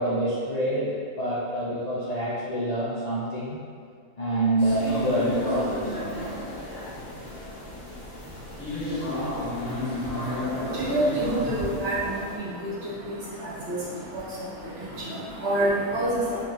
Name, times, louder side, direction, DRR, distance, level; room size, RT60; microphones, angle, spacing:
voice 1, 0.0-3.6 4.2-6.0, right 1 dB, 55° left, -8 dB, 0.4 m, -26 dB
sound 1, 4.6-12.4, left 1 dB, 75° left, 1.3 m, -32 dB
voice 2, 9.9-16.4, right 1 dB, 55° right, -7 dB, 1.0 m, -29 dB
4.8 x 2.8 x 2.4 m, 2.1 s
omnidirectional pair, 1.4 m